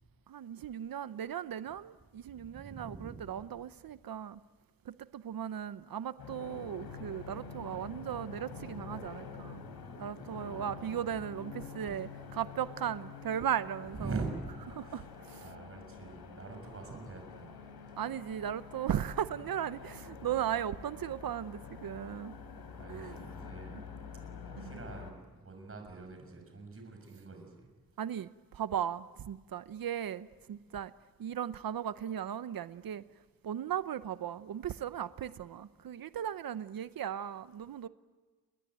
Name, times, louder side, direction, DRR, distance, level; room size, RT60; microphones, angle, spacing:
voice 1, 0.3-4.4 4.9-9.6 10.0-14.1 14.7-15.5 18.0-22.4 22.9-23.2 23.7-23.8 24.6-24.7 28.0-30.9 31.2-33.0 33.4-37.9, right 9 dB, 65° right, 0.8 m, -37 dB
voice 2, 2.3-3.4 10.3-11.1 13.9-15.1 15.4-17.6 22.7-23.8 24.4-27.7, right 3 dB, 35° right, 6.7 m, -44 dB
sound 1, 6.2-25.1, left 5 dB, 85° left, 3.7 m, -47 dB
30.0 x 21.0 x 9.3 m
wide cardioid pair, 140°, 37 cm